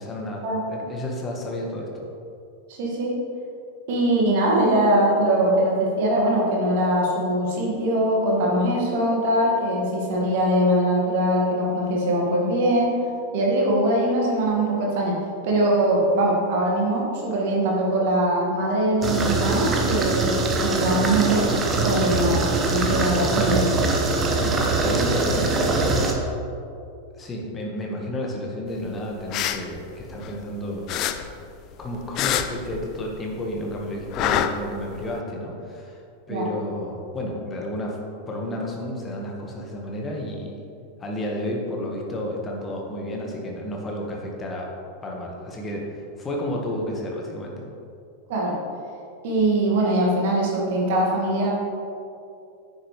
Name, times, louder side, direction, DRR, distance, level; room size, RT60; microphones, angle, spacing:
voice 1, 0.0-2.1 24.4-26.2 27.1-30.9 31.8-36.0 36.3-38.0 38.3-40.6 41.0-44.7 45.0-47.6, left 1 dB, 20° left, -1 dB, 1.5 m, -31 dB
voice 2, 2.7-3.2 3.9-13.0 13.3-15.2 15.4-21.5 21.8-23.7 36.3-36.5 48.3-48.5 49.2-51.5, right 1 dB, 50° right, -2 dB, 1.9 m, -22 dB
sound 1, 19.0-26.1, right 3 dB, 25° right, 1.0 m, -23 dB
sound 2, 29.1-30.5 30.9-33.3 33.5-35.1, left 10 dB, 40° left, 0.4 m, -27 dB
9.6 x 7.1 x 3.3 m, 2.6 s
figure-of-eight pair, 90°, 0 cm